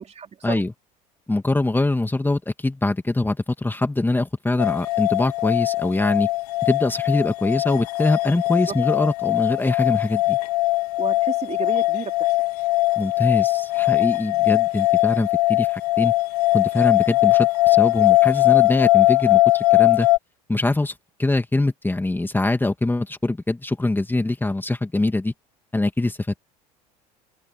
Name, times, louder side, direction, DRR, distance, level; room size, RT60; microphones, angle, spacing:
voice 1, 0.2-0.6 8.5-8.8 11.0-12.3, right 7 dB, 35° right, 3.9 m, -32 dB
voice 2, 1.3-6.3 6.6-10.4 13.0-16.1 16.5-20.1 20.5-20.9 21.2-25.3 25.7-26.2, left 2 dB, 10° left, 2.5 m, -23 dB
sound 1, 4.6-20.2, left 20 dB, 75° left, 1.1 m, -20 dB
open air
hypercardioid pair, 75°, 20 cm